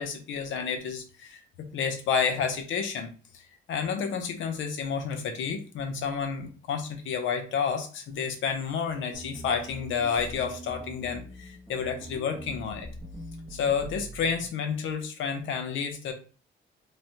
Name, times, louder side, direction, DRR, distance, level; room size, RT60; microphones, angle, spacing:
voice 1, 0.0-3.1 3.7-12.9 13.5-16.1, left 6 dB, 80° left, 6 dB, 0.7 m, -30 dB
sound 1, 9.1-14.5, equal, 5° right, 0.6 m, -43 dB
3.2 x 2.1 x 2.7 m, 0.38 s
cardioid pair, 90°, 20 cm